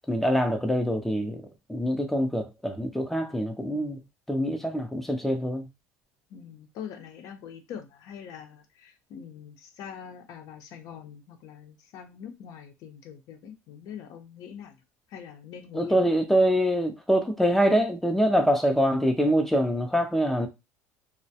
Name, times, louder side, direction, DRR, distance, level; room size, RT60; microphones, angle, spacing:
voice 1, 0.1-1.4 1.7-4.0 4.3-5.7 15.7-20.5, equal, 5° left, 0.5 m, -24 dB
voice 2, 6.3-14.8 15.1-16.1, left 8 dB, 60° left, 0.6 m, -43 dB
2.2 x 2.0 x 2.7 m
supercardioid pair, 105°, 6 cm